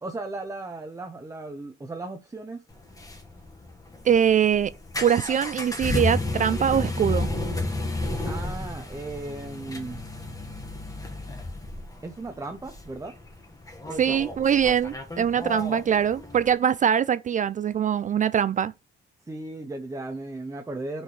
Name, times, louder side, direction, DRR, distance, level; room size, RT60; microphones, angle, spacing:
voice 1, 0.0-2.6 8.3-10.0 12.0-13.2 13.9-14.2 19.2-21.0, right 2 dB, 15° right, 0.9 m, -36 dB
sound 1, 2.7-16.6, left 2 dB, 15° left, 1.6 m, -32 dB
voice 2, 4.0-4.7 5.0-7.3 14.0-18.7, right 8 dB, 40° right, 0.4 m, -23 dB
9.8 x 4.5 x 3.3 m
cardioid pair, 90°, 20 cm